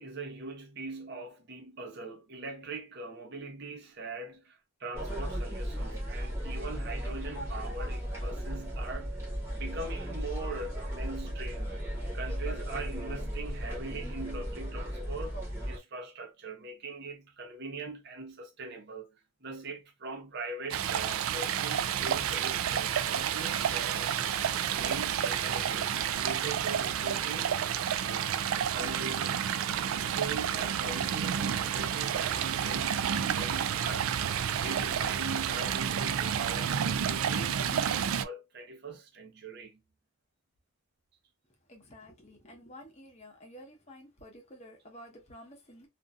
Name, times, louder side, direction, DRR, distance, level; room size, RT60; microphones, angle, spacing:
voice 1, 0.0-9.2 9.5-11.8 12.1-15.4 15.7-24.1 24.6-27.6 28.0-28.4 28.7-29.6 29.9-34.2 34.6-39.8, right 3 dB, 50° right, 0.7 m, -41 dB
sound 1, 4.9-15.8, equal, 10° right, 1.0 m, -36 dB
Stream, 20.7-38.3, right 9 dB, 85° right, 0.3 m, -30 dB
voice 2, 41.7-45.9, equal, 30° left, 0.9 m, -51 dB
2.5 x 2.5 x 2.3 m
head